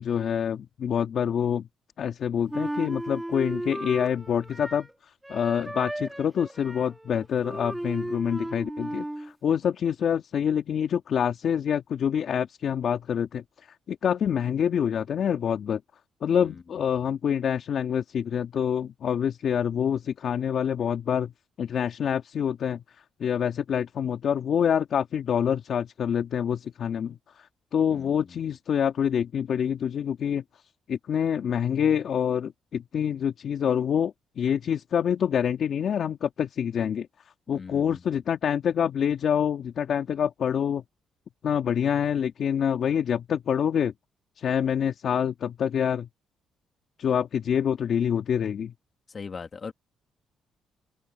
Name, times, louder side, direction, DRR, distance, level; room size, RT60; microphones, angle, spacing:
voice 1, 0.0-1.7 2.0-4.9 5.3-13.4 13.9-15.8 16.2-21.3 21.6-22.8 23.2-27.5 27.7-30.4 30.9-37.1 37.5-40.8 41.4-43.9 44.4-46.1 47.0-48.7, left 8 dB, 60° left, 2.2 m, -26 dB
Wind instrument woodwind instrument, 2.5-4.9 5.2-9.3, right 1 dB, 10° right, 2.9 m, -35 dB
voice 2, 16.3-16.6 16.9-17.1 27.9-28.5 37.5-38.2 49.1-49.7, left 5 dB, 40° left, 2.5 m, -41 dB
open air
cardioid pair, 90°, 0 cm